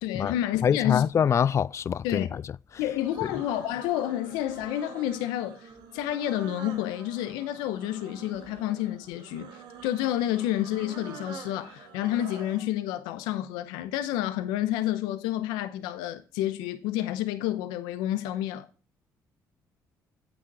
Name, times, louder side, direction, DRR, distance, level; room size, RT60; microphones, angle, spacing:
voice 1, 0.0-1.0 2.0-2.3 2.8-18.7, left 13 dB, 90° left, 0.7 m, -30 dB
voice 2, 0.6-2.4, left 8 dB, 40° left, 0.3 m, -24 dB
sound 1, 2.8-12.7, right 6 dB, 75° right, 1.8 m, -46 dB
8.5 x 6.3 x 4.7 m
supercardioid pair, 75°, 7 cm